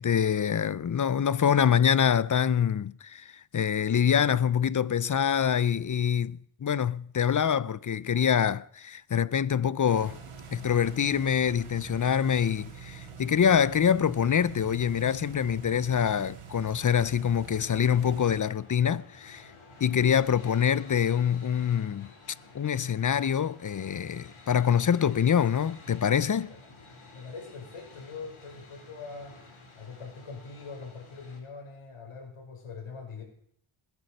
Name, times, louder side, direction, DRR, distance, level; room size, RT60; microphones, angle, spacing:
voice 1, 0.0-10.2 10.5-19.5 19.8-22.1 22.5-26.5, left 8 dB, 40° left, 0.6 m, -25 dB
sound 1, 9.9-18.4, right 6 dB, 80° right, 3.2 m, -45 dB
sound 2, 17.4-31.4, left 3 dB, 75° left, 5.3 m, -52 dB
voice 2, 27.1-29.4 29.8-33.2, left 4 dB, 90° left, 5.4 m, -43 dB
20.0 x 11.0 x 6.6 m
wide cardioid pair, 100°, 50 cm